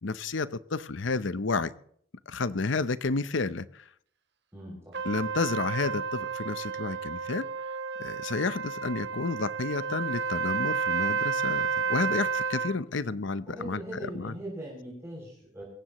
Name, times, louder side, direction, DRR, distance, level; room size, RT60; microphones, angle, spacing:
voice 1, 0.0-1.7 2.3-3.8 5.0-7.5 8.0-13.8 14.1-14.3, left 3 dB, 65° left, 15 dB, 0.7 m, -31 dB
voice 2, 4.5-5.0 13.5-15.6, right 1 dB, 15° right, -4 dB, 6.7 m, -40 dB
Trumpet, 4.9-12.8, right 5 dB, 55° right, 1.4 m, -31 dB
25.0 x 15.5 x 3.1 m, 0.64 s
head